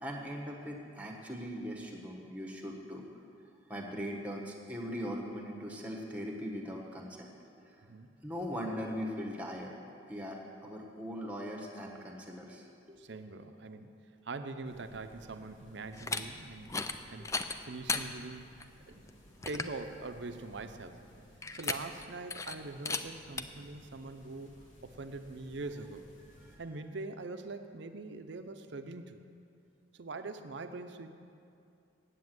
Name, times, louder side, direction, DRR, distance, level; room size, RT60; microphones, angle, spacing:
voice 1, 0.0-3.0 3.7-7.3 8.2-9.8 10.1-13.0 26.5-26.6, equal, 10° right, 0 dB, 1.3 m, -40 dB
voice 2, 13.0-13.9 14.2-17.4 17.6-19.0 19.5-21.0 21.5-24.6 24.8-26.0 26.6-29.3 29.9-31.1, right 3 dB, 60° right, 8 dB, 0.6 m, -43 dB
sound 1, 14.6-26.6, equal, 75° left, 2.3 m, -58 dB
sound 2, 15.9-16.2 16.6-17.0 17.2-18.0 18.6-18.7 19.1-19.2 19.4-19.8 21.4-22.0 22.3-22.5 22.8-23.0 23.4-23.5, left 4 dB, 15° left, 0.4 m, -35 dB
9.5 x 8.4 x 7.8 m, 2.5 s
head